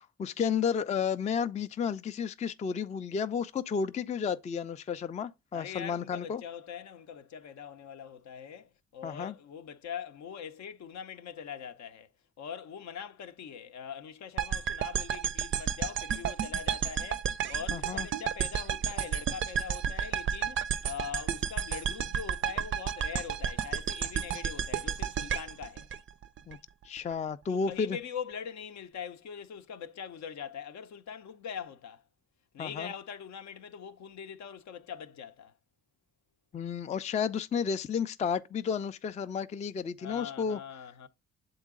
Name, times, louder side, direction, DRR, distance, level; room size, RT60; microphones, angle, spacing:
voice 1, 0.0-6.4 9.0-9.3 17.7-18.1 26.5-26.6 26.8-28.0 32.6-32.9 36.5-40.6, left 6 dB, 25° left, 0.3 m, -32 dB
voice 2, 5.5-12.1 12.4-25.9 27.5-32.0 32.5-35.5 40.0-41.1, left 7 dB, 65° left, 0.7 m, -42 dB
sound 1, 14.4-26.6, right 8 dB, 40° right, 0.4 m, -32 dB
7.2 x 3.9 x 3.6 m
cardioid pair, 90°, 30 cm